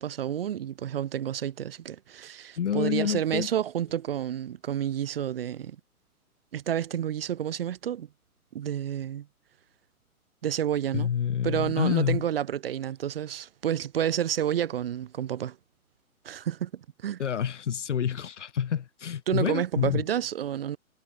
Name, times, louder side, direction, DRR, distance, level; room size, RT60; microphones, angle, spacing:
voice 1, 0.0-5.8 6.5-8.1 8.5-9.3 10.4-11.1 11.4-15.6 16.2-17.2 19.3-20.8, right 10 dB, 40° right, 1.3 m, -30 dB
voice 2, 2.6-3.5 10.9-12.2 17.2-20.0, left 8 dB, 55° left, 0.8 m, -28 dB
figure-of-eight pair, 125°, 44 cm